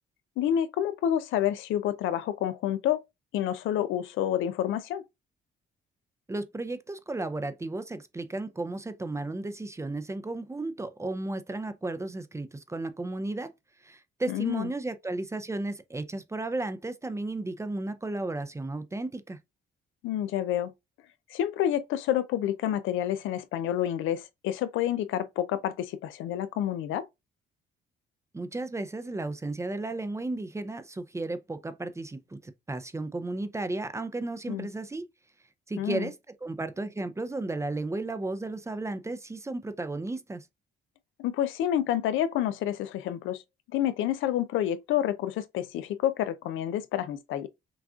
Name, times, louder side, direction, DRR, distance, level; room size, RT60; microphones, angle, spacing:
voice 1, 0.4-3.0 3.3-5.0 14.3-14.7 20.0-20.7 21.3-27.1 34.5-34.7 35.8-36.1 41.2-43.4 43.7-47.5, left 11 dB, 85° left, 0.5 m, -28 dB
voice 2, 6.3-13.5 13.8-19.4 28.3-35.1 35.7-36.1 36.4-40.4, right 2 dB, 15° right, 0.5 m, -34 dB
6.0 x 2.4 x 2.4 m
cardioid pair, 90°, 20 cm